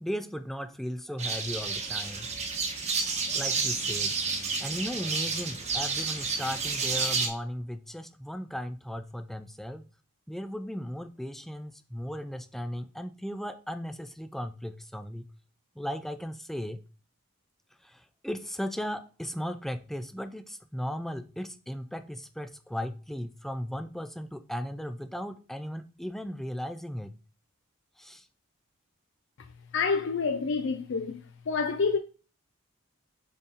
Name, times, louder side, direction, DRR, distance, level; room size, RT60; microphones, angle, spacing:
voice 1, 0.0-2.3 3.3-4.2 4.6-9.8 10.3-15.3 15.8-16.8 17.8-27.1 28.0-28.3, equal, ahead, 0.4 m, -36 dB
sound 1, 1.2-7.3, right 4 dB, 30° right, 1.1 m, -30 dB
voice 2, 29.7-31.2 31.5-32.0, left 5 dB, 60° left, 0.5 m, -27 dB
7.2 x 4.1 x 4.0 m
head